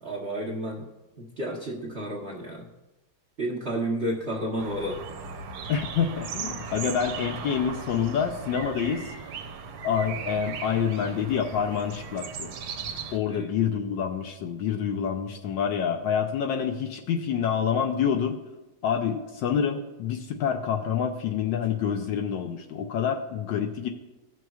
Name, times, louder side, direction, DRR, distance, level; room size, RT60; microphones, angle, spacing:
voice 1, 0.0-0.9 1.2-2.7 3.4-5.0 13.3-13.5, right 1 dB, 50° right, -3 dB, 0.8 m, -31 dB
sound 1, 4.6-13.2, right 5 dB, 80° right, 1.5 m, -37 dB
voice 2, 5.7-9.1 9.8-12.5 13.1-18.4 18.8-23.9, left 7 dB, 75° left, 3 dB, 1.2 m, -27 dB
16.0 x 6.1 x 2.3 m, 1.0 s
omnidirectional pair, 2.3 m